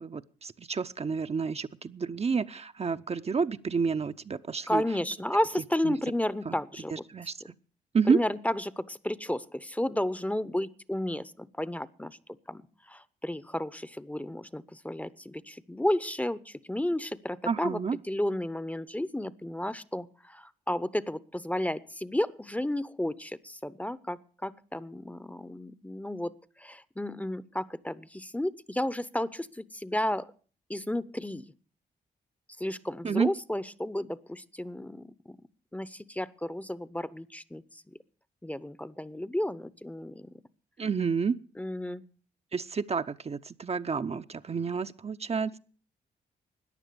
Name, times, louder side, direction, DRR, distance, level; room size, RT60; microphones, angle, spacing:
voice 1, 0.0-4.8 5.8-6.0 6.5-6.6 6.9-7.5 7.9-8.2 17.5-18.0 33.0-33.3 40.8-41.4 42.5-45.6, right 5 dB, 35° right, 9 dB, 0.7 m, -29 dB
voice 2, 4.7-6.9 8.1-12.2 12.5-12.6 12.9-17.8 18.1-30.3 30.7-31.4 32.6-35.4 35.7-37.9 38.4-40.3 41.6-42.0, left 1 dB, 10° left, 17 dB, 0.8 m, -32 dB
14.5 x 9.8 x 6.8 m, 0.42 s
supercardioid pair, 50°, 17 cm